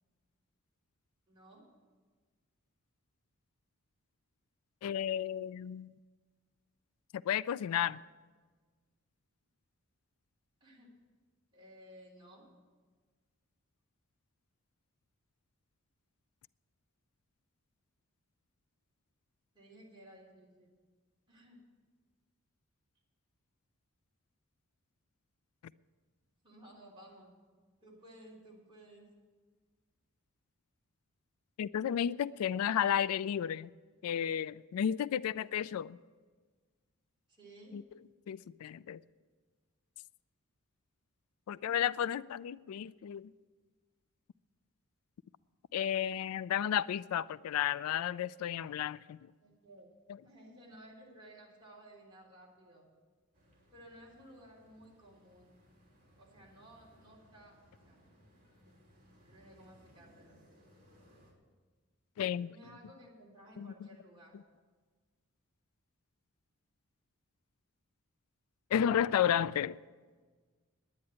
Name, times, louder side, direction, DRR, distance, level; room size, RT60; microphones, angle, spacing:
voice 1, 1.3-1.7 10.6-11.0 11.5-12.5 19.5-20.7 21.3-21.6 26.4-27.4 27.8-29.1 35.2-35.5 37.3-37.8 49.4-49.9 50.2-52.9 53.7-55.6 56.2-58.0 59.2-60.4 62.5-64.4, right 1 dB, 20° right, -5 dB, 3.5 m, -56 dB
voice 2, 4.8-6.0 7.1-8.0 31.6-33.7 34.0-36.0 37.7-37.8 38.3-39.0 41.5-43.3 45.7-49.2 62.2-62.5 63.6-63.7 68.7-69.8, left 9 dB, 85° left, 19 dB, 0.3 m, -32 dB
sound 1, 53.3-61.3, equal, 40° right, 3.2 m, -64 dB
10.5 x 9.7 x 8.0 m, 1.4 s
head